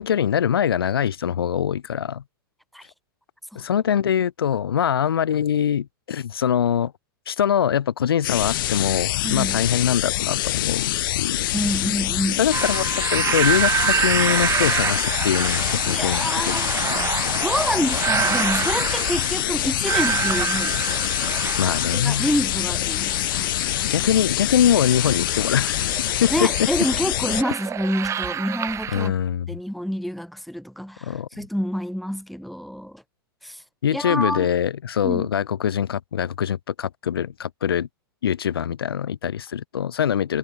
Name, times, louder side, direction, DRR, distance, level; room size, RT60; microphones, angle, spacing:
voice 1, 0.0-2.2 3.5-6.9 7.3-11.4 12.4-16.6 21.6-22.3 23.8-25.9 26.2-26.7 28.9-29.5 31.0-31.3 33.8-37.9 38.2-40.4, left 9 dB, 85° left, 4.6 m, -23 dB
sound 1, 8.2-27.4, left 15 dB, 65° left, 1.2 m, -25 dB
voice 2, 9.2-9.6 11.5-12.4 15.9-16.7 17.1-20.8 21.9-23.5 26.3-29.1 29.5-33.0 33.4-33.6 33.9-34.5 35.0-35.3, equal, ahead, 3.1 m, -27 dB
sound 2, 12.5-29.1, right 8 dB, 25° right, 6.6 m, -27 dB
hypercardioid pair, 120°, 12 cm